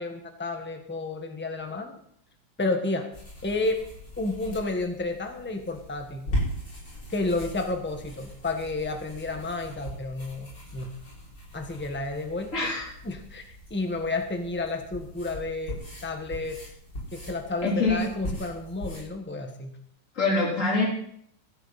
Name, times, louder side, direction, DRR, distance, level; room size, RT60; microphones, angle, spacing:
voice 1, 0.0-1.9 2.6-3.0 3.4-3.8 4.2-6.3 7.1-10.9 11.5-12.5 13.0-16.6 17.1-19.8, left 2 dB, 5° left, 5 dB, 1.2 m, -31 dB
sound 1, 3.1-19.0, equal, 55° left, 6.6 m, -39 dB
voice 2, 12.5-12.9 17.6-18.0 20.2-20.9, left 3 dB, 40° left, -2 dB, 3.7 m, -24 dB
15.5 x 13.0 x 4.2 m, 0.68 s
omnidirectional pair, 2.2 m